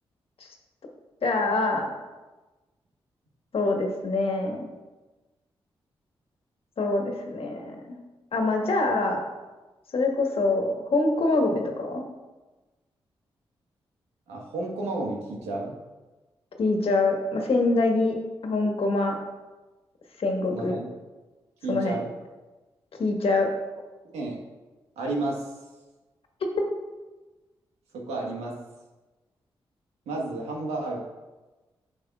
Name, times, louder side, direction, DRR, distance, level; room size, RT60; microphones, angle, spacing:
voice 1, 1.2-1.9 3.5-4.7 6.8-8.0 8.3-9.2 9.9-12.0 16.6-18.2 18.4-19.2 20.2-20.8 21.7-22.0 23.0-23.5, left 2 dB, 65° left, 2 dB, 1.4 m, -25 dB
voice 2, 14.3-15.7 20.5-20.9 21.6-22.1 24.1-24.4 25.0-25.5 27.9-28.5 30.1-31.0, right 2 dB, 90° right, -1 dB, 1.4 m, -31 dB
9.8 x 6.5 x 2.4 m, 1.2 s
supercardioid pair, 40°, 11 cm